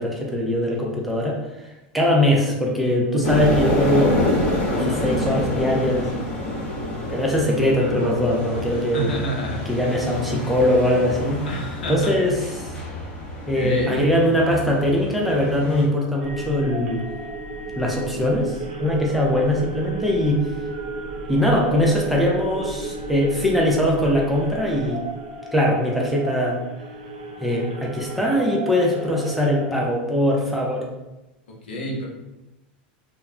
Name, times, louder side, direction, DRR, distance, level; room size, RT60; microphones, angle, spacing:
voice 1, 0.0-1.4 1.9-4.2 4.7-6.1 7.1-9.1 9.7-11.4 11.9-12.7 13.5-17.0 17.8-20.4 21.3-25.0 25.5-26.6 27.4-30.9, left 1 dB, ahead, -3 dB, 0.6 m, -21 dB
sound 1, 3.2-15.8, left 1 dB, 30° left, 1.2 m, -27 dB
voice 2, 8.9-9.6 11.5-12.2 13.5-14.0 31.6-32.0, equal, 90° left, -2 dB, 0.7 m, -28 dB
sound 2, 16.2-29.8, right 3 dB, 70° right, 0.6 m, -34 dB
2.3 x 2.2 x 3.2 m, 0.99 s
hypercardioid pair, 110°, 5 cm